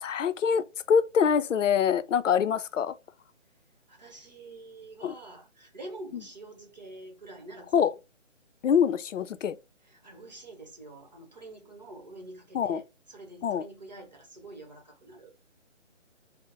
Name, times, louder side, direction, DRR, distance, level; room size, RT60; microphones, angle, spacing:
voice 1, 0.0-2.9 5.0-5.1 7.7-7.9 8.6-9.6 12.5-12.8 13.4-13.6, left 7 dB, 90° left, 0.5 m, -25 dB
voice 2, 3.9-8.0 9.8-15.3, right 2 dB, 35° right, 0.8 m, -46 dB
5.5 x 2.0 x 2.5 m
hypercardioid pair, 175°, 37 cm